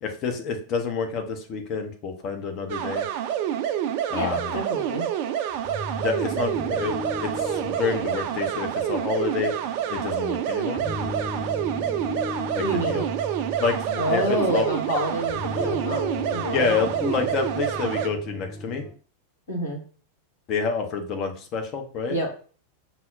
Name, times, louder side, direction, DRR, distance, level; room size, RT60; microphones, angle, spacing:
voice 1, 0.0-3.0 4.1-4.6 6.0-9.5 9.9-10.8 12.5-13.1 13.6-14.7 16.5-18.8 20.5-22.2, left 5 dB, 35° left, 4 dB, 0.6 m, -28 dB
sound 1, 2.7-18.1, right 10 dB, 45° right, 0.4 m, -28 dB
voice 2, 4.1-5.1 12.6-13.1 14.0-16.9 19.5-19.8 22.1-22.3, equal, 70° left, -1 dB, 1.2 m, -28 dB
sound 2, 5.5-18.9, left 1 dB, 15° left, 1.0 m, -36 dB
5.5 x 2.0 x 2.5 m, 0.41 s
figure-of-eight pair, 90°, 0 cm